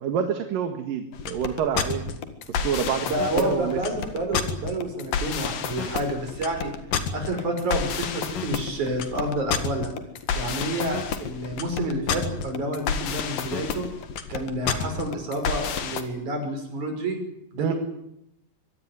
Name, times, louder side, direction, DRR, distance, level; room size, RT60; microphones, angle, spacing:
voice 1, 0.0-2.0 2.5-3.1 3.3-3.8 17.6-17.7, right 8 dB, 75° right, 6 dB, 3.3 m, -27 dB
sound 1, 1.1-16.0, left 7 dB, 75° left, 3.4 m, -29 dB
voice 2, 3.1-6.7 7.1-9.9 10.4-13.9 14.3-17.2 17.5-17.7, right 1 dB, 55° right, 5 dB, 7.1 m, -29 dB
24.5 x 18.5 x 9.6 m, 0.79 s
omnidirectional pair, 4.0 m